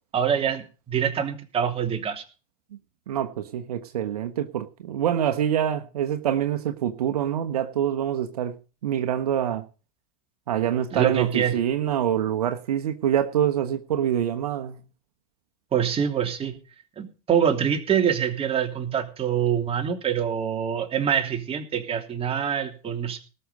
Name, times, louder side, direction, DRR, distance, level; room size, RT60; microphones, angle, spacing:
voice 1, 0.1-2.2 10.9-11.6 15.7-16.6 17.0-23.2, right 8 dB, 30° right, 4 dB, 3.0 m, -25 dB
voice 2, 3.1-8.5 8.8-9.7 10.5-14.8, right 10 dB, 80° right, 7 dB, 1.3 m, -25 dB
19.0 x 6.7 x 5.4 m, 0.35 s
hypercardioid pair, 95°, 19 cm